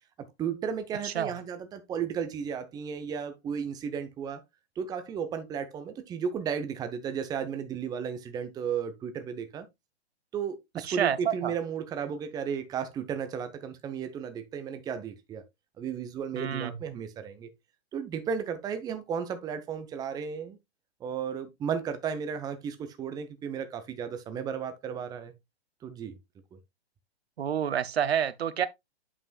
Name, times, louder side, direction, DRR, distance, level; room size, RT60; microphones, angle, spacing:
voice 1, 0.4-4.4 4.8-9.7 10.3-15.4 15.8-17.5 17.9-20.6 21.0-25.3 25.8-26.1, right 7 dB, 10° right, 0.7 m, -34 dB
voice 2, 1.0-1.4 10.9-11.5 16.3-16.7 27.4-28.7, right 9 dB, 70° right, 0.7 m, -28 dB
8.5 x 5.4 x 2.3 m
figure-of-eight pair, 115°, 33 cm